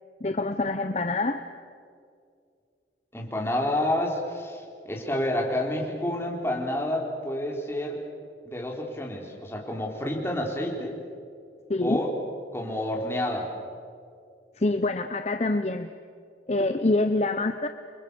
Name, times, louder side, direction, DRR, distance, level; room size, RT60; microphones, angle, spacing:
voice 1, 0.2-1.4 11.7-12.0 14.6-15.9 16.5-17.7, left 2 dB, 35° left, 8 dB, 0.8 m, -25 dB
voice 2, 3.1-8.0 8.5-10.9 11.8-12.1 12.5-13.5, left 1 dB, 15° left, -1 dB, 4.0 m, -29 dB
29.5 x 23.5 x 7.0 m, 2.3 s
head